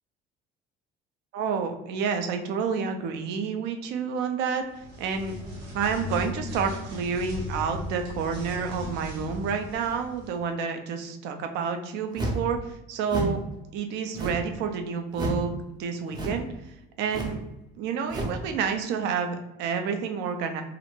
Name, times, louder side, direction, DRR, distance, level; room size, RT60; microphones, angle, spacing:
voice 1, 1.3-5.4 5.7-13.4 13.7-17.4 17.8-20.6, right 6 dB, 70° right, 6 dB, 0.4 m, -29 dB
sound 1, 4.7-10.4, left 1 dB, 90° right, 1.0 m, -37 dB
sound 2, 12.1-12.5 13.1-13.4 14.1-14.6 15.1-15.5 16.1-16.5 17.1-17.4 18.1-18.4, right 1 dB, 20° right, 0.5 m, -31 dB
2.5 x 2.1 x 2.9 m, 0.91 s
cardioid pair, 120°, 18 cm